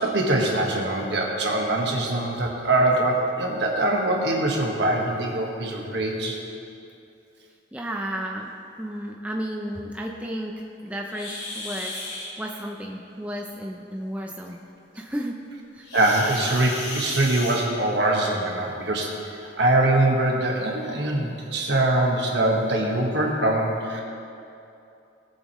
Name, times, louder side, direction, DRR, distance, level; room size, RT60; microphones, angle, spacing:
voice 1, 0.0-6.4 15.9-24.0, right 1 dB, 65° right, 0 dB, 1.5 m, -23 dB
voice 2, 7.7-8.5 8.8-10.5 10.8-11.9 12.4-14.6 15.0-15.4 15.7-15.9, equal, 5° right, 0 dB, 0.5 m, -32 dB
sound 1, 11.1-12.3 15.8-18.1 19.3-19.5 20.1-20.2 20.7-20.8 21.6-21.7 22.2-22.4, left 2 dB, 60° left, 2.3 m, -35 dB
18.5 x 7.4 x 3.1 m, 2.6 s
head